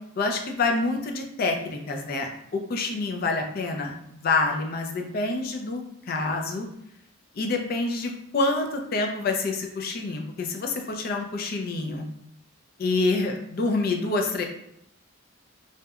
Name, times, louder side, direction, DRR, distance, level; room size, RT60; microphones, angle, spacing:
voice 1, 0.2-6.7 7.4-12.1 12.8-14.4, left 3 dB, 50° left, 3 dB, 0.4 m, -27 dB
2.7 x 2.1 x 2.3 m, 0.79 s
head